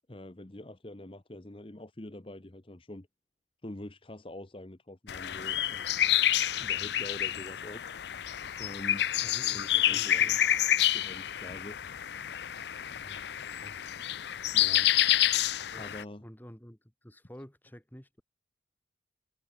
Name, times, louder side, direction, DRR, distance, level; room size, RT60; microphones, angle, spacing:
voice 1, 0.1-3.1 3.6-5.9 6.6-7.9 8.6-9.1 9.4-10.3 10.9-11.8 12.2-12.4 14.5-15.1 15.7-16.2, left 1 dB, 30° left, 1.0 m, -45 dB
sound 1, 5.1-16.0, left 12 dB, 65° left, 0.5 m, -28 dB
voice 2, 9.2-10.4 13.0-13.9 15.7-18.2, equal, 10° left, 1.8 m, -51 dB
head